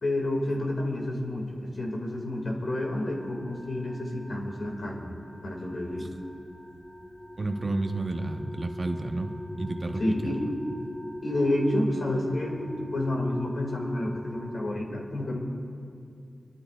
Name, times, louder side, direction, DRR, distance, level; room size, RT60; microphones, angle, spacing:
voice 1, 0.0-5.1 5.4-6.1 10.0-10.4 11.2-12.6 12.9-15.4, left 1 dB, 60° left, -1 dB, 2.4 m, -29 dB
sound 1, 2.7-14.7, left 1 dB, 5° right, 1.1 m, -41 dB
voice 2, 7.4-9.3 9.6-10.5, right 2 dB, 40° right, 4 dB, 1.2 m, -31 dB
25.5 x 12.5 x 2.5 m, 2.5 s
cardioid pair, 55°, 0 cm